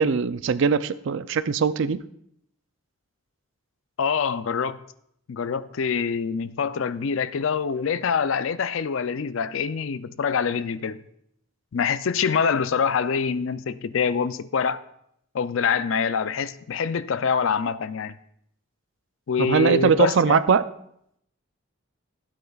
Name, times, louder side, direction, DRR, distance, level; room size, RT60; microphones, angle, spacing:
voice 1, 0.0-2.0 19.4-20.6, right 6 dB, 60° right, 0.4 m, -21 dB
voice 2, 4.0-4.8 5.3-11.0 11.7-14.8 15.3-18.1 19.3-20.4, left 6 dB, 65° left, 0.4 m, -25 dB
15.5 x 8.7 x 2.4 m
head